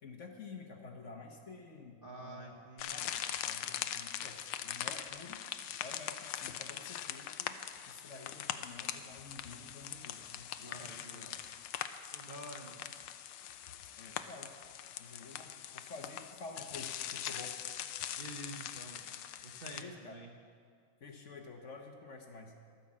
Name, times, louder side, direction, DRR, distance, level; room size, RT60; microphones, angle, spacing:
voice 1, 0.0-2.6 2.9-5.4 5.8-7.6 7.9-11.3 14.0-14.5 15.0-17.6 19.8-20.2 21.0-22.5, left 4 dB, 50° left, 3 dB, 1.1 m, -50 dB
voice 2, 2.0-3.1 10.6-11.4 12.1-12.9 18.2-19.1 19.4-20.3, right 1 dB, 40° right, 0 dB, 0.8 m, -49 dB
sound 1, 2.8-19.8, left 10 dB, 90° left, 1.3 m, -42 dB
12.0 x 9.9 x 7.4 m, 2.1 s
omnidirectional pair, 1.9 m